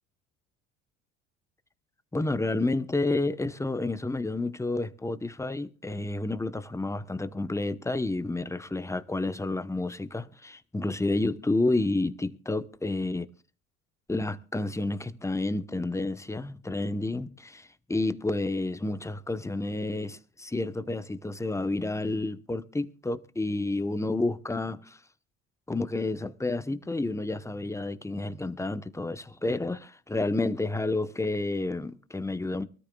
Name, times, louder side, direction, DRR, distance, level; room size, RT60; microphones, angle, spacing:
voice 1, 2.1-13.3 14.1-25.0 25.7-32.7, left 2 dB, 10° left, 0.9 m, -30 dB
24.0 x 13.5 x 2.3 m
hypercardioid pair, 70°, 37 cm